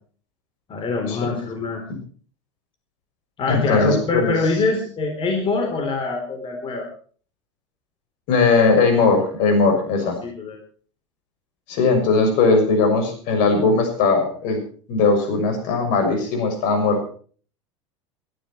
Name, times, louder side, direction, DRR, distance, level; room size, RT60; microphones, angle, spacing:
voice 1, 0.7-1.8 3.4-6.9 10.0-10.6, left 3 dB, 35° left, 3 dB, 3.8 m, -24 dB
voice 2, 3.5-4.3 8.3-10.2 11.7-14.6 14.9-17.1, left 4 dB, 60° left, 5 dB, 6.6 m, -19 dB
21.5 x 12.0 x 4.5 m, 0.43 s
hypercardioid pair, 90°, 15 cm